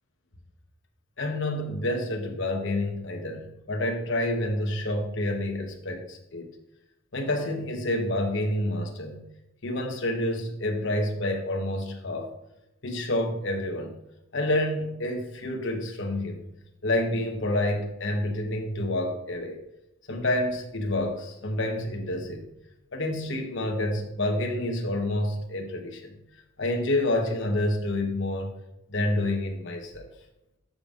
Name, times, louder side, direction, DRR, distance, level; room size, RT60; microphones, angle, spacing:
voice 1, 1.2-6.5 7.1-9.2 9.6-12.3 12.8-13.9 14.3-16.4 16.8-19.6 20.1-22.4 22.9-26.2 26.6-28.5 28.9-30.1, left 1 dB, 60° left, 3 dB, 1.1 m, -28 dB
12.5 x 5.3 x 2.5 m, 0.87 s
head